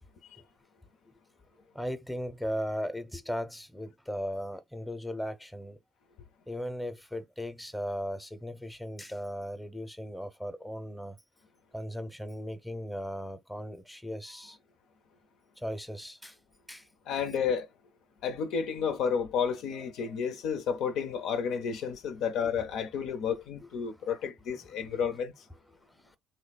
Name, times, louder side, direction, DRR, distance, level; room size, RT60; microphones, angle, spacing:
voice 1, 1.7-5.8 6.5-11.2 11.7-14.6 15.6-16.3 16.7-16.8 20.1-20.2 24.9-25.2, equal, 5° left, 0.7 m, -37 dB
voice 2, 17.1-17.7 18.2-25.3, left 7 dB, 65° left, 0.6 m, -31 dB
3.2 x 2.2 x 4.0 m
hypercardioid pair, 60°, 0 cm